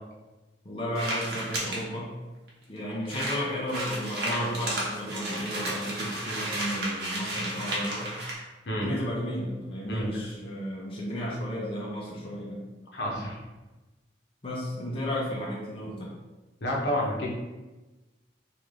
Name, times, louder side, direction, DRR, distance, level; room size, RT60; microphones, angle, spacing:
voice 1, 0.6-2.1 2.7-8.2 8.8-12.6 14.4-16.1, equal, 30° left, -5 dB, 0.6 m, -33 dB
sound 1, 0.9-1.8 2.5-2.6 2.8-2.9 3.0-8.3, right 1 dB, 65° right, 0.9 m, -33 dB
voice 2, 12.9-13.4 16.6-17.3, equal, 70° left, -3 dB, 0.8 m, -29 dB
3.2 x 2.5 x 3.6 m, 1.2 s
head